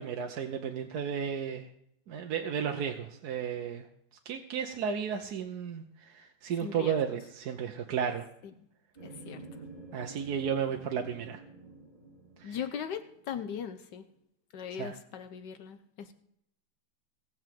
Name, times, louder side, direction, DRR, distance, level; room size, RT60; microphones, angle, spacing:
voice 1, 0.0-1.7 2.1-3.8 4.2-8.3 9.9-11.4 12.4-12.6 14.8-14.9, right 7 dB, 65° right, 4 dB, 1.3 m, -33 dB
voice 2, 6.6-7.0 9.0-9.5 12.4-14.0 14.5-16.1, left 8 dB, 75° left, 10 dB, 1.5 m, -39 dB
sound 1, 9.0-13.4, right 3 dB, 25° right, 4.1 m, -49 dB
18.0 x 6.3 x 7.6 m, 0.74 s
omnidirectional pair, 1.9 m